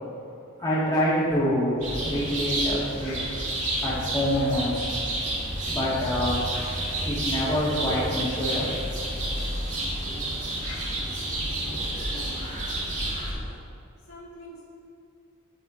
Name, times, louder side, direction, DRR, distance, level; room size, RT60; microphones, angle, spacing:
voice 1, 0.6-3.1 3.8-4.9 5.7-6.5 7.0-8.7, equal, 20° left, -8 dB, 2.1 m, -26 dB
sound 1, 1.8-13.6, equal, 65° left, 2.1 m, -37 dB
sound 2, 1.8-13.3, right 1 dB, 40° right, 1.8 m, -31 dB
voice 2, 11.6-12.6 14.1-14.6, equal, 90° left, -8 dB, 1.6 m, -45 dB
12.0 x 4.7 x 4.1 m, 2.5 s
head